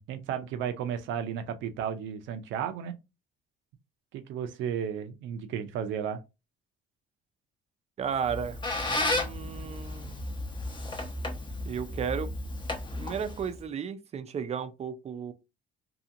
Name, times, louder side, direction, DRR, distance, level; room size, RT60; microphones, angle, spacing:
voice 1, 0.0-2.9 4.1-6.2, right 8 dB, 80° right, 0.6 m, -33 dB
voice 2, 8.0-8.6 8.9-10.2 11.6-12.3 13.0-15.3, right 7 dB, 35° right, 0.4 m, -34 dB
Squeak, 8.1-13.6, left 2 dB, 25° left, 0.8 m, -33 dB
2.8 x 2.7 x 2.5 m
cardioid pair, 110°, 20 cm